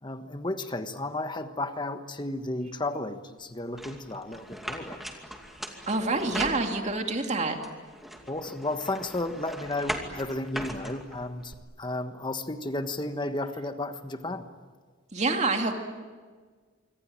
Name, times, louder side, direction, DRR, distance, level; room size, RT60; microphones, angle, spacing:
voice 1, 0.0-5.0 8.3-14.5, left 2 dB, 20° left, 8 dB, 1.4 m, -33 dB
sound 1, 3.8-7.1 7.6-11.5, equal, ahead, 2.5 m, -39 dB
voice 2, 5.9-7.6 15.1-15.7, right 3 dB, 35° right, 4 dB, 2.6 m, -27 dB
26.0 x 25.0 x 8.9 m, 1.5 s
head